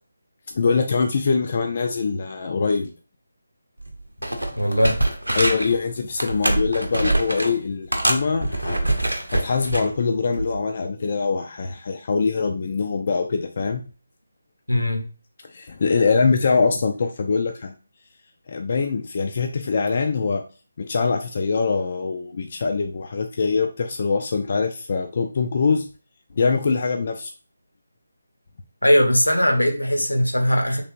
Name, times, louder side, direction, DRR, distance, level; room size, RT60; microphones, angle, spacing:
voice 1, 0.5-2.9 5.3-8.9 9.3-13.8 15.4-17.7 18.5-20.4 20.8-25.9 26.4-27.3, left 4 dB, 40° left, 4 dB, 0.3 m, -23 dB
sound 1, 3.8-3.9 4.2-5.8 6.2-7.5 7.9-9.9 10.4-10.6, right 1 dB, 80° right, 0.7 m, -24 dB
voice 2, 4.6-5.0 14.7-15.1 28.8-30.8, equal, 80° left, 4 dB, 0.8 m, -19 dB
3.3 x 2.8 x 2.5 m, 0.36 s
figure-of-eight pair, 155°, 0 cm